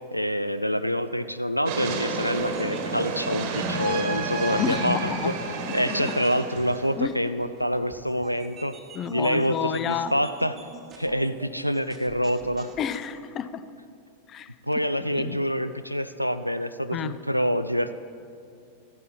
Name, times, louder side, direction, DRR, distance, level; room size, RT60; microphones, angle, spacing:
voice 1, 0.1-5.3 5.7-8.8 9.1-10.6 11.0-12.7 14.7-17.9, equal, 90° left, 12 dB, 0.3 m, -26 dB
sound 1, 1.7-7.1, right 3 dB, 50° right, 1.2 m, -30 dB
sound 2, 2.4-13.1, right 4 dB, 25° right, 1.1 m, -47 dB
voice 2, 4.6-5.4 5.7-6.1 7.0-7.2 8.9-10.1 12.8-13.6 14.3-14.5 15.1-15.4 16.9-17.2, left 8 dB, 30° left, 13 dB, 0.5 m, -30 dB
14.0 x 11.0 x 4.4 m, 2.5 s
figure-of-eight pair, 90°, 0 cm